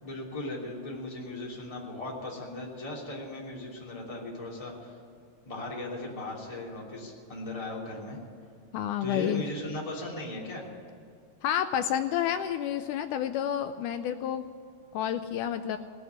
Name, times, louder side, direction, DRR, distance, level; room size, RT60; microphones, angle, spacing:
voice 1, 0.0-5.0 5.5-8.2 9.0-10.6, left 2 dB, 10° left, -4 dB, 2.7 m, -37 dB
voice 2, 8.7-9.4 11.4-14.5 14.9-15.8, left 10 dB, 80° left, 9 dB, 1.8 m, -29 dB
19.0 x 8.0 x 9.3 m, 2.4 s
omnidirectional pair, 4.1 m